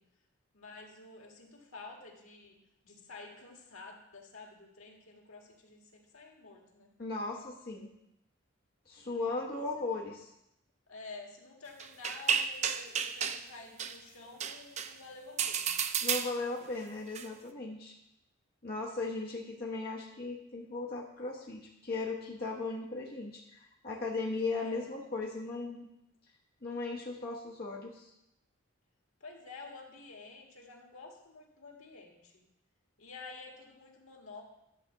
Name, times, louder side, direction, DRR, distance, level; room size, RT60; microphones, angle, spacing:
voice 1, 0.5-2.6 2.8-6.9 9.8-9.9 10.9-15.8 24.6-24.9 29.2-32.4 33.0-34.4, left 3 dB, 85° left, 0 dB, 1.9 m, -50 dB
voice 2, 7.0-7.9 8.9-10.3 16.0-17.9 18.6-25.9 26.6-28.1, left 3 dB, 45° left, -3 dB, 1.1 m, -37 dB
sound 1, 11.8-13.4 13.8-14.0 14.4-14.9 15.4-16.6 17.1-17.3, right 7 dB, 35° right, 0.4 m, -32 dB
11.0 x 4.2 x 7.1 m, 0.83 s
head